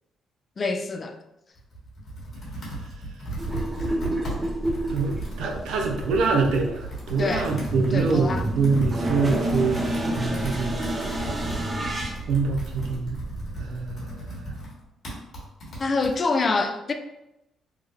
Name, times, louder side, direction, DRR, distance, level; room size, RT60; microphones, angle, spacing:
voice 1, 0.6-1.2 7.2-7.5 7.9-8.4 15.8-16.9, left 3 dB, 40° left, 6 dB, 0.4 m, -25 dB
Computer keyboard, 1.6-16.2, right 1 dB, 55° left, 1.4 m, -36 dB
sound 1, 3.4-13.9, right 1 dB, 25° right, 0.6 m, -30 dB
voice 2, 4.9-10.9 12.3-13.2 13.6-14.5, right 4 dB, 85° right, 2 dB, 0.6 m, -25 dB
3.5 x 2.1 x 3.3 m, 0.88 s
cardioid pair, 90°, 0 cm